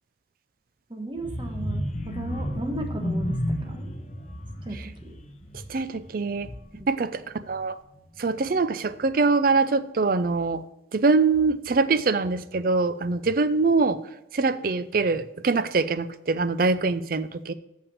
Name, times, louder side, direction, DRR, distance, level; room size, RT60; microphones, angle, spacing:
voice 1, 0.9-3.4 3.6-3.9 4.6-5.2 6.8-6.9, right 1 dB, 25° right, 3 dB, 1.2 m, -35 dB
sound 1, 1.2-6.9 7.3-7.6 7.9-8.0, equal, 35° left, 0.7 m, -32 dB
voice 2, 5.7-6.5 6.9-7.2 7.5-7.8 8.2-10.6 10.9-14.0 14.3-17.5, right 4 dB, 50° right, 13 dB, 0.4 m, -23 dB
6.7 x 5.7 x 6.8 m, 0.89 s
head